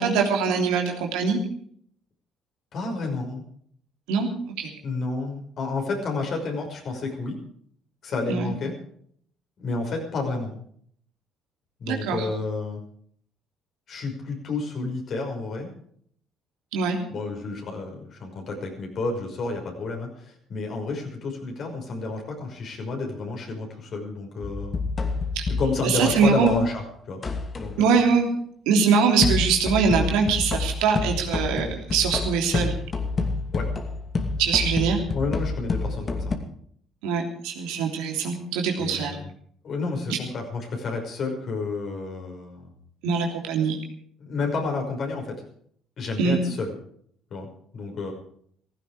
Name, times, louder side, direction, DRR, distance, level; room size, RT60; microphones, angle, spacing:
voice 1, 0.0-1.4 4.1-4.7 8.3-8.5 11.9-12.2 16.7-17.0 25.3-25.5 25.8-26.5 27.8-28.3 28.7-32.8 34.4-35.0 37.0-39.2 40.1-40.2 43.0-43.8 46.2-46.4, right 5 dB, 80° right, 2 dB, 3.2 m, -23 dB
voice 2, 2.7-3.4 4.8-7.4 8.0-8.7 9.6-10.6 11.8-12.8 13.9-15.7 17.1-24.8 25.5-27.2 27.6-28.0 33.5-33.7 35.1-36.3 38.8-39.3 39.6-42.7 44.2-45.4 46.0-46.7 47.3-47.5 47.7-48.1, left 3 dB, 55° left, 2 dB, 5.7 m, -30 dB
sound 1, 24.4-26.7 27.2-27.8 29.2-36.4, left 3 dB, 40° left, 2.5 m, -28 dB
16.5 x 15.5 x 5.0 m, 0.62 s
hypercardioid pair, 55°, 0 cm